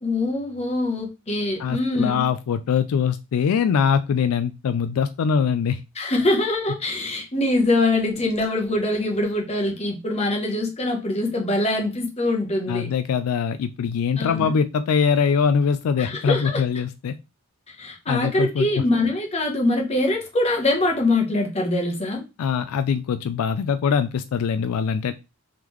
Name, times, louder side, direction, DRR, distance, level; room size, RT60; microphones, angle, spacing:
voice 1, 0.0-2.2 6.0-12.9 14.2-14.5 16.0-16.6 17.7-22.2, left 2 dB, 30° left, 1 dB, 0.9 m, -23 dB
voice 2, 1.6-5.8 12.7-17.2 18.1-18.7 22.4-25.1, left 6 dB, 80° left, 11 dB, 0.3 m, -22 dB
3.6 x 3.3 x 3.1 m, 0.27 s
head